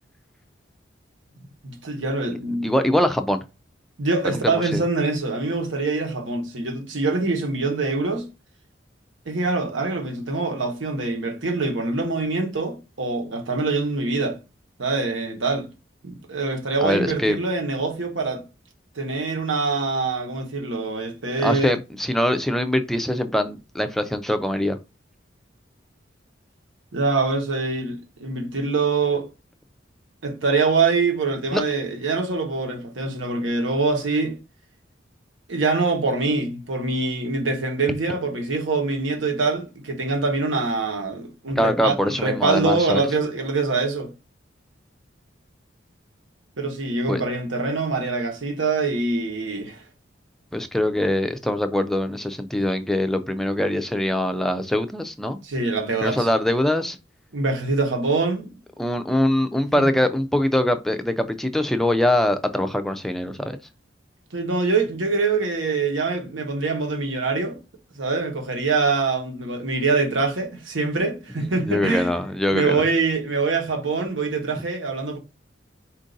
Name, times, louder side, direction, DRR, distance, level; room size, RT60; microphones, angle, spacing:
voice 1, 1.6-2.8 4.0-8.3 9.2-14.4 14.8-15.7 16.0-18.4 18.9-21.8 26.9-29.3 30.2-34.4 35.5-44.1 46.6-49.8 55.4-56.3 57.3-58.5 64.3-67.6 67.9-72.1 72.5-75.2, right 3 dB, 90° right, 1.1 m, -24 dB
voice 2, 2.6-3.4 4.2-4.8 16.8-17.4 21.4-24.8 31.5-31.6 41.6-43.0 47.1-47.2 50.5-55.4 56.0-57.0 58.8-63.6 71.4-72.8, left 1 dB, ahead, 0.3 m, -23 dB
4.5 x 2.5 x 3.8 m
head